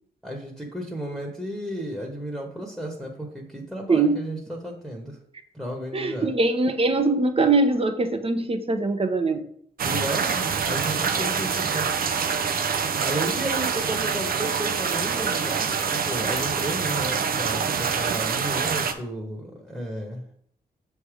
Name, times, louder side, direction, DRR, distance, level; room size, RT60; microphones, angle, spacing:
voice 1, 0.2-5.2 5.5-6.3 9.8-12.1 13.0-20.2, right 1 dB, ahead, -1 dB, 1.3 m, -33 dB
voice 2, 3.9-4.2 5.9-9.4, right 3 dB, 35° right, 7 dB, 0.9 m, -22 dB
sound 1, 9.8-18.9, right 6 dB, 65° right, 0.7 m, -25 dB
6.8 x 3.5 x 4.9 m, 0.66 s
cardioid pair, 65°, 16 cm